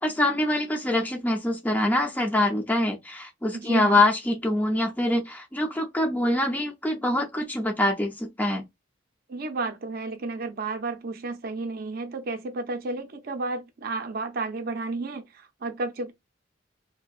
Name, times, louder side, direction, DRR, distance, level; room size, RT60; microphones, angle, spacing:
voice 1, 0.0-8.6, left 1 dB, 10° left, 0.4 m, -24 dB
voice 2, 3.5-4.0 9.3-16.1, right 3 dB, 55° right, 0.5 m, -32 dB
2.7 x 2.1 x 2.3 m
head